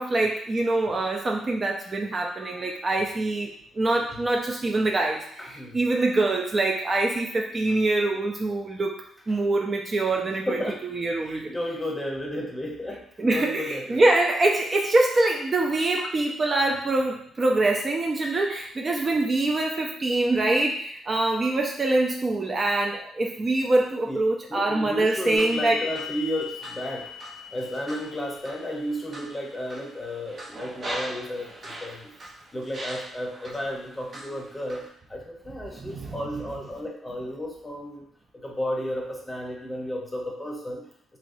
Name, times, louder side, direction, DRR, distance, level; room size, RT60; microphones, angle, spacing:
voice 1, 0.0-3.5 3.8-9.0 9.3-11.5 13.2-25.9 35.7-36.6, right 2 dB, 30° right, 1 dB, 0.4 m, -24 dB
voice 2, 5.4-5.8 10.5-10.8 11.3-14.0 24.1-24.2 24.5-27.1 27.5-32.1 32.5-34.8 35.1-38.1 38.4-40.8, equal, 15° left, -1 dB, 0.8 m, -33 dB
sound 1, 25.4-32.3 32.7-33.6 34.1-34.9, left 2 dB, 45° right, 0.8 m, -38 dB
3.1 x 2.9 x 2.6 m, 0.67 s
cardioid pair, 90°, 0 cm